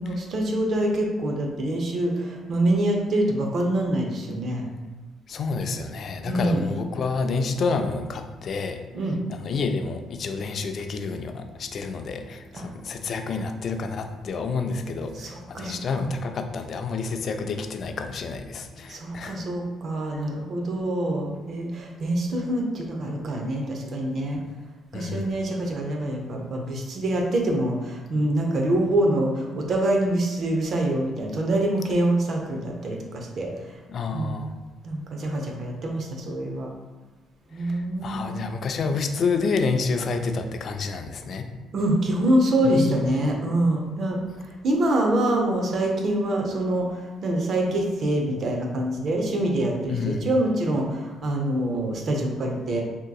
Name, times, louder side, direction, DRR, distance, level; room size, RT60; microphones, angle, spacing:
voice 1, 0.0-4.7 6.3-6.6 8.9-9.2 12.5-12.6 15.1-16.1 18.9-24.4 24.9-33.5 34.1-34.4 34.8-36.7 37.5-38.5 41.7-52.8, right 1 dB, 55° right, 1 dB, 0.6 m, -25 dB
voice 2, 5.3-8.8 9.3-19.5 24.9-25.4 33.9-34.5 37.6-41.5 42.7-43.1 49.9-50.3, left 4 dB, 55° left, 6 dB, 0.3 m, -29 dB
3.6 x 2.8 x 2.3 m, 1.3 s
supercardioid pair, 70°, 0 cm